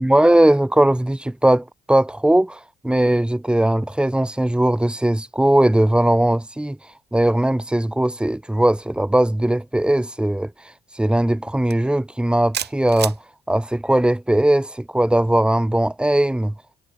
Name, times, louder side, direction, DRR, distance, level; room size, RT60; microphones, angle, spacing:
voice 1, 0.0-6.8 7.1-10.5 10.9-13.2 13.5-16.5, right 1 dB, 5° right, 0.8 m, -19 dB
sound 1, 11.7-11.9 12.5-13.2, right 9 dB, 55° right, 1.4 m, -28 dB
cardioid pair, 90°, 20 cm